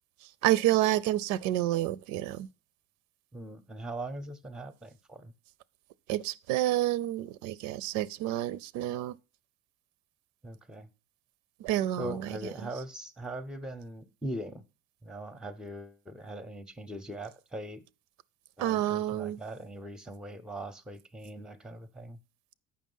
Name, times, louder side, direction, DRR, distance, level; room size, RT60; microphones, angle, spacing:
voice 1, 0.4-2.5 6.1-9.1 11.6-12.2 18.6-19.4, right 14 dB, 85° right, 0.5 m, -29 dB
voice 2, 3.3-5.3 10.4-10.9 12.0-14.6 15.0-17.8 18.6-22.2, right 1 dB, ahead, 0.6 m, -41 dB
7.4 x 5.7 x 5.4 m
cardioid pair, 140°, 29 cm